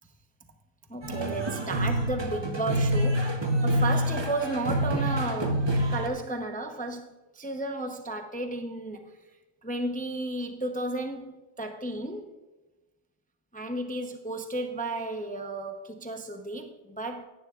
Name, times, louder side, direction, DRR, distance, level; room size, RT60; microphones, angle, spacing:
voice 1, 0.9-3.3 3.6-5.6 5.9-9.1 9.6-12.3 13.5-17.3, right 2 dB, 10° left, 5 dB, 0.4 m, -33 dB
sound 1, 1.0-6.1, right 1 dB, 20° right, 0.8 m, -27 dB
16.0 x 10.5 x 2.4 m, 1.1 s
omnidirectional pair, 1.5 m